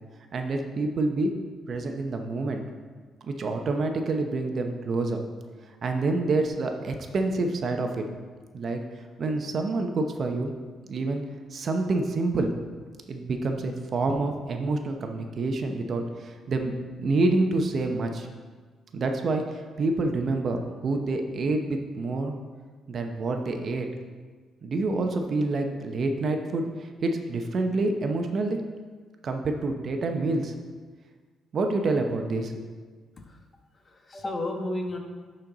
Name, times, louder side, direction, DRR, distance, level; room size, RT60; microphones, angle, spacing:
voice 1, 0.3-1.3 1.7-2.6 3.3-5.2 5.8-8.1 8.5-8.8 9.2-10.5 10.9-11.2 11.5-12.5 13.1-18.3 18.9-22.3 22.9-23.9 24.6-28.6 29.2-30.5 31.5-32.6, right 2 dB, 50° right, 4 dB, 0.8 m, -27 dB
voice 2, 33.7-35.0, left 1 dB, 35° left, 3 dB, 1.2 m, -33 dB
11.5 x 4.4 x 3.9 m, 1.5 s
cardioid pair, 90°, 0 cm